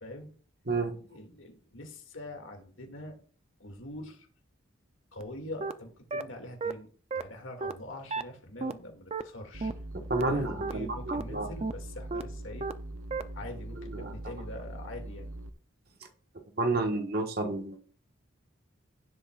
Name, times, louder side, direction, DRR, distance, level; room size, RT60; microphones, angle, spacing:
voice 1, 1.0-3.2 3.6-4.3 5.1-9.7 10.2-12.7 13.3-15.3, left 1 dB, 70° left, 2.3 m, -44 dB
sound 1, 5.2-5.3 5.6-5.7 6.1-6.2 6.6-6.7 7.1-7.2 7.6-7.7 8.1-8.2 8.6-8.7 9.1-9.2 9.6-9.7 10.1-10.2 10.6-10.7 11.1-11.2 11.6-11.7 12.1-12.2 12.6-12.7 13.1-13.2, right 4 dB, 30° right, 0.5 m, -32 dB
sound 2, 9.5-15.5, right 1 dB, 85° right, 0.9 m, -42 dB
voice 2, 10.1-11.5 13.8-14.1 16.6-17.8, right 2 dB, 50° right, 1.4 m, -30 dB
16.0 x 7.8 x 2.4 m
head